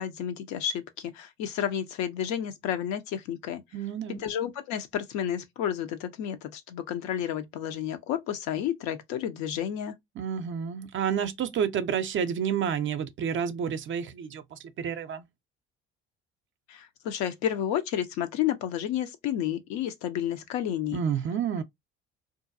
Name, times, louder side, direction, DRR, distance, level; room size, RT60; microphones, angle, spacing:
voice 1, 0.0-3.6 4.1-9.9 16.7-21.0, left 10 dB, 65° left, 0.6 m, -31 dB
voice 2, 3.7-4.2 10.2-15.3 20.9-21.6, right 8 dB, 40° right, 0.5 m, -30 dB
2.6 x 2.2 x 2.5 m
hypercardioid pair, 60°, 31 cm